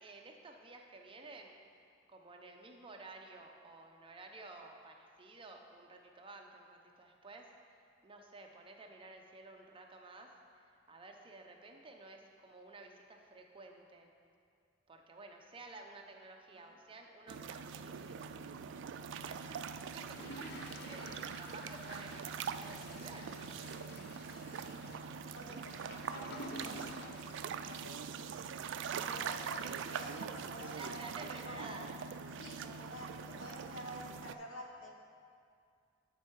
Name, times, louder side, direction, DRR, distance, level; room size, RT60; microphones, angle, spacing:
voice 1, 0.0-1.5 2.1-7.5 8.0-10.3 10.5-14.1 14.9-18.3 18.6-19.7 19.9-22.2 22.5-23.3 28.1-28.3 29.0-29.3 29.6-29.8 30.6-32.0, right 3 dB, 25° right, 2 dB, 0.7 m, -53 dB
sound 1, 17.3-34.3, right 6 dB, 65° right, 0.3 m, -43 dB
Bird, 18.5-23.7, equal, ahead, 1.0 m, -63 dB
Toilet flush, 20.1-28.2 28.7-28.8 28.9-29.0, left 1 dB, 55° left, 0.6 m, -51 dB
voice 2, 20.6-21.2 24.3-24.8 25.3-27.2 27.5-28.0 28.9-31.8 32.3-34.9, equal, 70° left, 0 dB, 1.0 m, -50 dB
11.0 x 4.6 x 4.6 m, 2.3 s
head